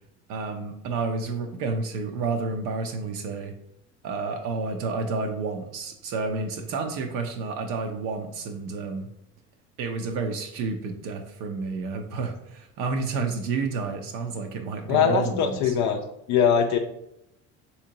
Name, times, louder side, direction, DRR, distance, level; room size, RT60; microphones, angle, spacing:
voice 1, 0.3-3.5 4.0-9.1 9.8-15.7, right 4 dB, 55° right, 4 dB, 0.5 m, -30 dB
voice 2, 14.9-16.0 16.3-16.8, left 7 dB, 50° left, 4 dB, 0.4 m, -21 dB
3.5 x 2.8 x 2.7 m, 0.80 s
hypercardioid pair, 70°, 38 cm